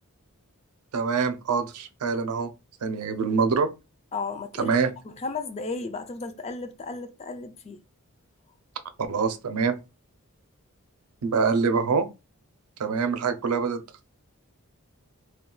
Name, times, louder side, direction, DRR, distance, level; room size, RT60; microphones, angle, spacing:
voice 1, 0.9-2.5 2.8-3.7 4.6-4.9 9.1-9.8 11.2-12.1 12.8-13.8, right 5 dB, 90° right, 0.5 m, -25 dB
voice 2, 4.1-4.7 5.0-7.8, left 3 dB, 30° left, 0.3 m, -34 dB
2.3 x 2.2 x 3.7 m
head